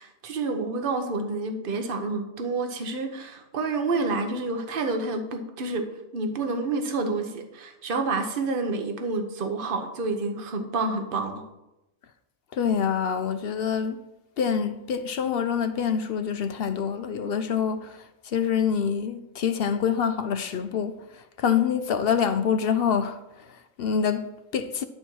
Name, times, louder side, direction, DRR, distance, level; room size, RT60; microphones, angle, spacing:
voice 1, 0.0-5.9 6.1-11.5, right 3 dB, 50° right, 1.1 m, -29 dB
voice 2, 12.5-14.0 14.4-24.8, left 7 dB, 60° left, 0.8 m, -26 dB
11.0 x 4.3 x 6.3 m
omnidirectional pair, 1.2 m